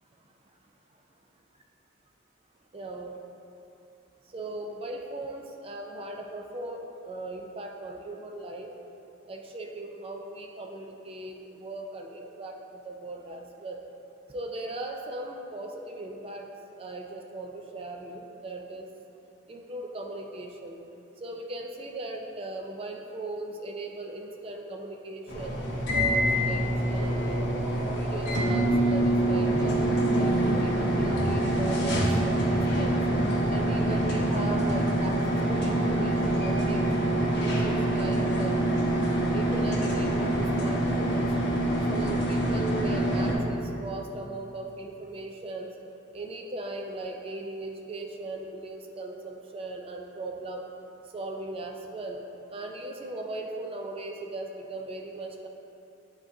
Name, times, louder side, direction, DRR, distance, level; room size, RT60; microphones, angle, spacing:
voice 1, 2.7-3.1 4.3-8.7 9.3-13.8 14.3-16.5 16.8-18.9 19.5-20.8 21.2-26.6 26.9-27.4 27.9-29.8 30.1-33.0 33.5-36.9 37.4-38.6 39.3-41.3 41.9-45.7 46.1-50.7 51.1-52.2 52.5-55.5, right 2 dB, 30° right, 2 dB, 0.4 m, -38 dB
sound 1, 25.3-43.3, right 1 dB, 60° left, 1.0 m, -25 dB
10.0 x 3.7 x 2.6 m, 2.8 s
head